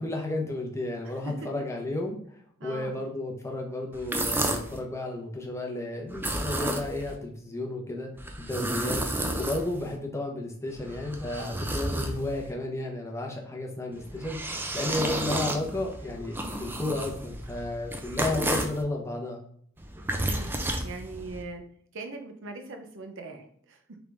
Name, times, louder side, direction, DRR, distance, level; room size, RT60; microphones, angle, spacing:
voice 1, 0.0-2.2 2.6-8.1 8.4-19.4, left 2 dB, 15° left, 0 dB, 0.8 m, -33 dB
voice 2, 2.6-3.0 20.1-21.6 21.9-24.0, right 3 dB, 65° right, 5 dB, 0.7 m, -41 dB
sound 1, 3.9-4.8 6.1-7.2 8.2-10.0 10.7-12.5 13.9-18.8 19.8-21.4, right 1 dB, 10° right, 0.4 m, -32 dB
3.7 x 3.5 x 3.4 m, 0.62 s
head